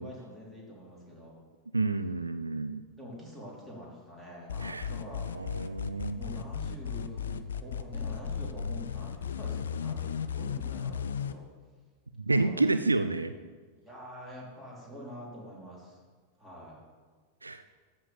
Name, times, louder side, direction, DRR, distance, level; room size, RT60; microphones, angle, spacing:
voice 1, 0.0-1.4 2.4-5.3 6.1-11.5 12.3-12.6 13.8-16.0 16.4-16.8, equal, 10° right, -5 dB, 3.7 m, -46 dB
voice 2, 1.7-2.8 4.6-4.9 5.3-6.2 12.2-13.3 17.4-17.6, right 3 dB, 80° right, 11 dB, 0.4 m, -29 dB
sound 1, 4.5-11.3, left 7 dB, 65° left, 0.5 m, -35 dB
13.0 x 4.5 x 6.8 m, 1.5 s
figure-of-eight pair, 90°, 0 cm